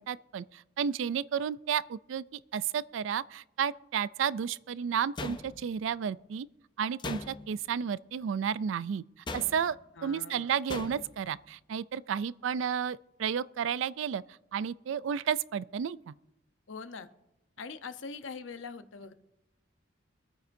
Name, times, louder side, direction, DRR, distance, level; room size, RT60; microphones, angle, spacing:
voice 1, 0.0-6.5 6.8-9.0 9.3-9.8 10.0-14.2 14.5-16.1, right 7 dB, 75° right, 0.3 m, -32 dB
sound 1, 5.2-5.9 7.0-7.7 9.3-9.8 10.7-11.2, left 3 dB, 25° left, 0.5 m, -40 dB
voice 2, 10.0-10.5 16.7-17.1 17.6-19.1, left 4 dB, 80° left, 0.8 m, -42 dB
25.0 x 9.3 x 2.6 m
head